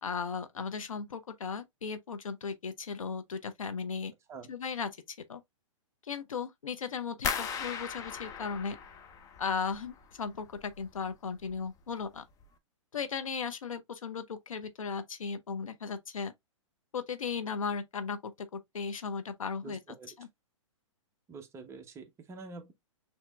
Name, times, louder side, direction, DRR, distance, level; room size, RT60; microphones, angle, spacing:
voice 1, 0.0-4.1 4.5-5.0 5.3-5.4 6.0-8.8 9.4-12.2 12.9-16.3 16.9-19.8 20.2-20.3, left 5 dB, 85° left, 0.8 m, -36 dB
sound 1, 7.2-10.1 10.4-11.1 11.5-11.9 12.3-12.4, left 6 dB, 20° left, 0.5 m, -38 dB
voice 2, 19.6-20.2 21.3-22.7, right 4 dB, 15° right, 0.7 m, -46 dB
6.1 x 2.8 x 2.2 m
hypercardioid pair, 130°, 17 cm